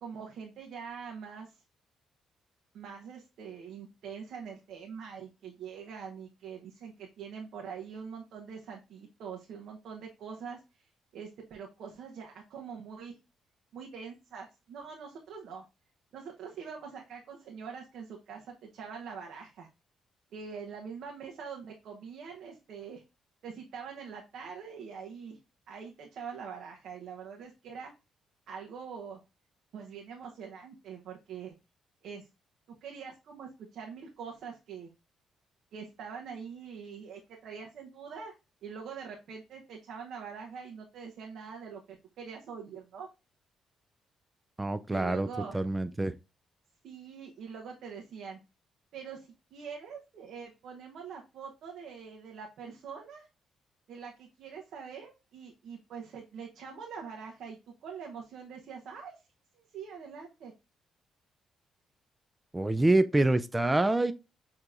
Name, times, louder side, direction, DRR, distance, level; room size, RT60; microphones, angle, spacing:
voice 1, 0.0-1.6 2.7-13.2 13.7-15.6 16.1-19.7 20.3-23.0 23.4-25.4 25.7-27.9 28.5-29.2 29.7-31.5 32.0-32.3 32.7-34.9 35.7-38.3 38.6-43.1 44.9-45.6 46.8-48.4 48.9-53.3 53.9-59.3 59.5-60.5, right 6 dB, 75° right, 0.9 m, -44 dB
voice 2, 44.6-45.3 45.5-46.1 62.5-64.1, right 2 dB, 15° right, 0.3 m, -26 dB
6.6 x 2.9 x 2.5 m
cardioid pair, 90°, 0 cm